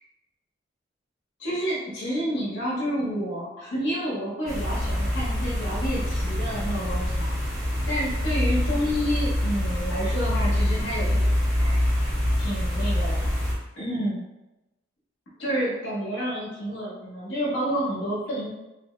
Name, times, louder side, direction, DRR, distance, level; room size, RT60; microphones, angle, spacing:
voice 1, 1.4-7.3 7.9-12.1 12.4-13.2 13.8-14.2 15.4-18.5, equal, 80° left, -7 dB, 0.9 m, -29 dB
sound 1, 4.5-13.5, left 1 dB, 5° left, 0.6 m, -25 dB
2.9 x 2.0 x 3.1 m, 0.95 s
head